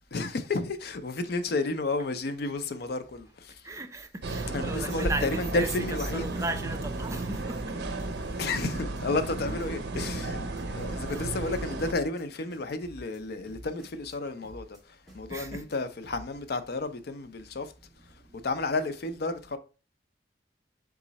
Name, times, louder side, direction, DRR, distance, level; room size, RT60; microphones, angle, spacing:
voice 1, 0.1-3.5 4.5-6.2 8.4-10.4 10.7-14.8 15.1-17.7 18.4-19.6, left 3 dB, 60° left, 0.5 m, -31 dB
voice 2, 3.6-7.9 10.8-11.3 15.3-15.7 17.9-18.5, right 2 dB, 15° right, 0.3 m, -37 dB
sound 1, 4.2-11.9, right 2 dB, 60° right, 0.7 m, -33 dB
sound 2, 5.4-5.5 5.7-6.4 6.7-7.1 7.4-8.1 8.3-9.0 9.3-9.7 9.9-10.6 10.9-11.6 11.9-12.2 12.5-13.2 13.5-14.2 14.4-14.8 15.1-15.8 16.0-16.4, equal, ahead, 1.5 m, -49 dB
3.6 x 3.0 x 4.0 m
head